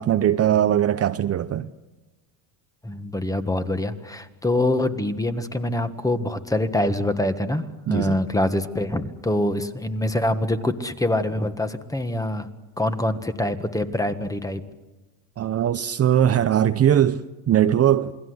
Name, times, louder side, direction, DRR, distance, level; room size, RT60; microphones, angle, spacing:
voice 1, 0.0-1.7 7.9-8.2 15.4-18.1, right 10 dB, 35° right, 0.7 m, -20 dB
voice 2, 2.8-12.5 12.8-14.6, left 1 dB, 10° left, 1.6 m, -25 dB
28.5 x 20.5 x 8.0 m
cardioid pair, 125°, 42 cm